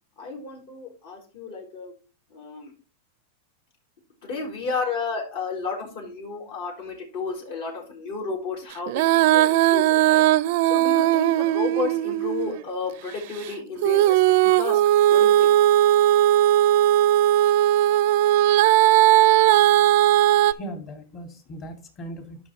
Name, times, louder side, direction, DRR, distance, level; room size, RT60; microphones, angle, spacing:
voice 1, 0.2-1.9 2.3-2.7 4.2-10.2 10.6-14.8 15.1-15.5, left 4 dB, 65° left, 1 dB, 4.3 m, -32 dB
Female singing, 8.9-12.6 13.8-20.5, right 13 dB, 55° right, 0.4 m, -18 dB
voice 2, 20.4-22.4, right 1 dB, 35° left, 4 dB, 2.4 m, -38 dB
12.0 x 5.8 x 3.1 m, 0.33 s
supercardioid pair, 145°, 0 cm